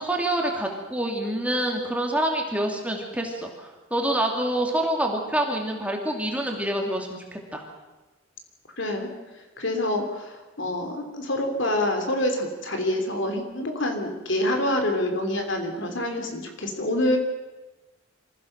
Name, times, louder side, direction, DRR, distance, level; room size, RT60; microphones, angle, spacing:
voice 1, 0.0-7.6, right 1 dB, 5° right, 1 dB, 2.6 m, -27 dB
voice 2, 8.8-9.1 9.6-17.2, left 1 dB, 60° left, 4 dB, 3.3 m, -26 dB
26.0 x 15.5 x 6.7 m, 1.2 s
head